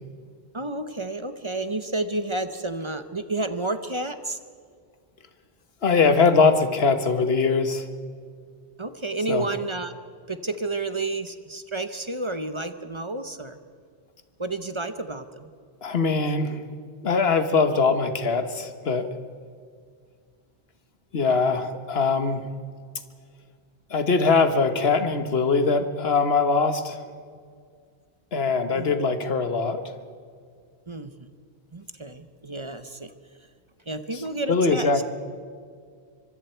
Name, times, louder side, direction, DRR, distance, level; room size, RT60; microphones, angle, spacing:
voice 1, 0.5-4.4 8.8-9.9 10.3-13.6 14.4-15.5 28.7-28.9 30.9-31.3 31.7-33.1 33.9-35.0, right 2 dB, 30° right, 10 dB, 0.8 m, -31 dB
voice 2, 5.8-7.8 9.3-9.5 15.8-16.6 17.0-19.1 21.1-22.5 23.9-27.0 28.3-29.8 34.1-34.2 34.5-35.0, left 4 dB, 65° left, 9 dB, 1.5 m, -22 dB
25.0 x 23.5 x 4.5 m, 2.1 s
omnidirectional pair, 1.1 m